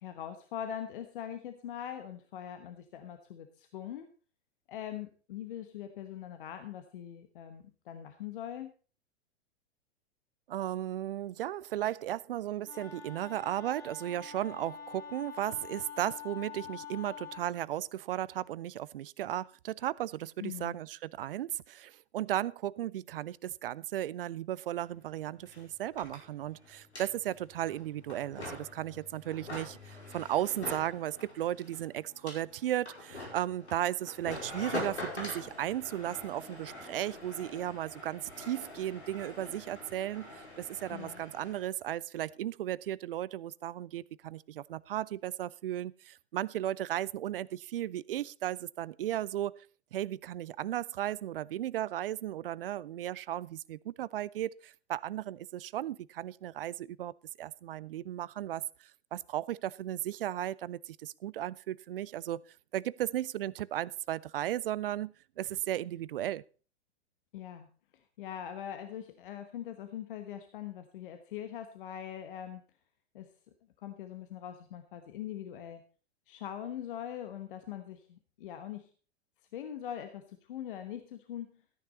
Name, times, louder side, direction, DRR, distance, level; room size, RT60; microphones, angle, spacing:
voice 1, 0.0-4.1 4.7-8.7 20.4-20.8 40.9-41.2 67.3-67.7 68.2-72.6 73.1-73.3 73.8-75.8 76.3-78.9 79.5-81.6, left 10 dB, 50° left, 1.2 m, -42 dB
voice 2, 10.5-40.3 40.6-49.5 49.9-57.1 57.4-62.4 62.7-66.4, right 12 dB, 55° right, 0.5 m, -35 dB
Wind instrument woodwind instrument, 12.6-17.5, left 7 dB, 30° left, 3.6 m, -46 dB
sound 1, 24.8-24.9 25.1-41.7, left 2 dB, 80° left, 5.4 m, -45 dB
13.5 x 9.8 x 4.1 m
figure-of-eight pair, 100°, 33 cm